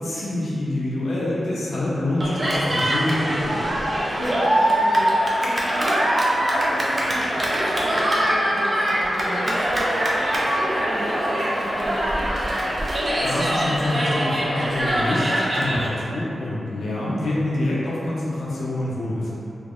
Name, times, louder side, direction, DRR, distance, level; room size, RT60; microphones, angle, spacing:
voice 1, 0.0-3.9 13.2-19.3, left 1 dB, 85° left, -6 dB, 0.6 m, -26 dB
Cheering, 2.2-15.9, right 1 dB, 25° right, 0.4 m, -23 dB
sound 1, 2.4-15.0, left 1 dB, 30° left, 0.4 m, -37 dB
voice 2, 4.1-12.2, equal, 80° right, -11 dB, 1.1 m, -33 dB
2.9 x 2.4 x 3.6 m, 2.6 s
wide cardioid pair, 175°, 0 cm